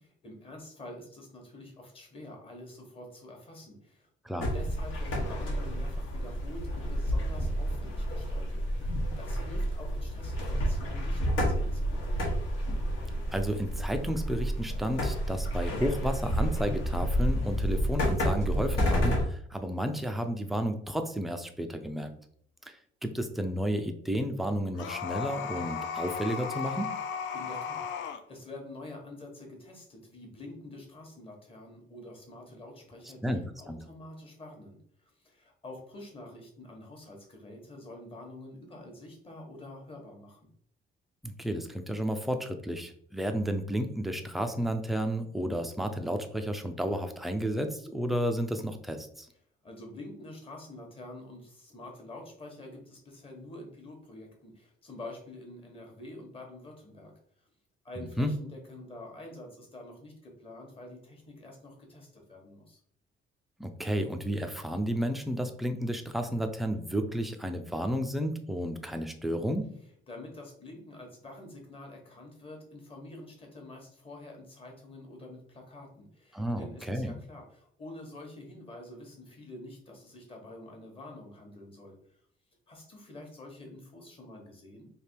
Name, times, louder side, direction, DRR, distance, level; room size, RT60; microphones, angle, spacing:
voice 1, 0.2-4.1 4.5-12.2 27.3-40.5 49.6-57.1 57.4-57.5 57.8-62.8 70.1-81.9 82.7-84.9, left 1 dB, 25° left, 1 dB, 1.1 m, -47 dB
sound 1, 4.4-19.2, equal, 90° left, 1.3 m, -30 dB
voice 2, 13.3-22.1 22.7-26.9 33.2-33.8 41.2-49.3 58.0-58.3 63.6-69.7 76.3-77.1, equal, ahead, 6 dB, 0.3 m, -32 dB
sound 2, 24.7-28.2, left 7 dB, 65° left, 0.4 m, -35 dB
3.3 x 2.9 x 4.5 m, 0.62 s
cardioid pair, 175°, 21 cm